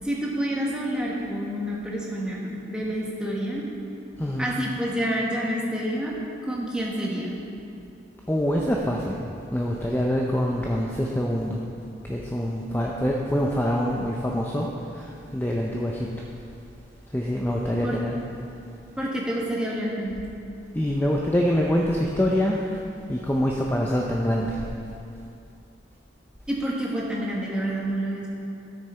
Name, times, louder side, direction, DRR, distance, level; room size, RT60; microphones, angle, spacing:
voice 1, 0.0-3.6 4.4-6.1 6.5-7.3 17.7-18.0 19.0-20.2 26.5-28.4, equal, 5° right, -4 dB, 1.3 m, -28 dB
voice 2, 4.2-4.5 8.3-9.2 9.5-11.6 12.0-14.7 14.9-16.1 17.1-18.2 20.7-22.6 23.1-24.6, equal, 10° left, -2 dB, 0.5 m, -25 dB
12.5 x 6.5 x 4.4 m, 2.6 s
head